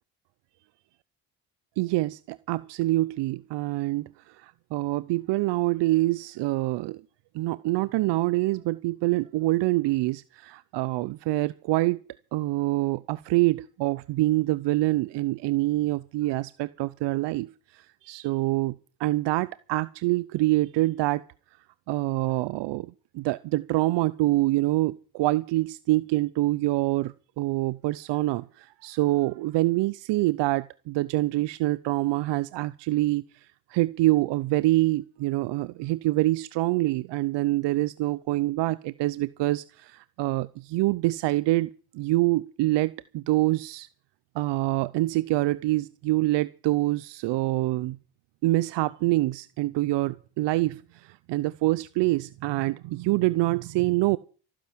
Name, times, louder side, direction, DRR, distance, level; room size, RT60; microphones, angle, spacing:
voice 1, 1.8-7.0 7.3-12.0 12.3-18.7 19.0-21.2 21.9-22.9 23.1-43.9 44.3-48.0 48.4-54.2, right 18 dB, 80° right, 0.8 m, -26 dB
15.5 x 9.9 x 7.4 m
cardioid pair, 130°, 42 cm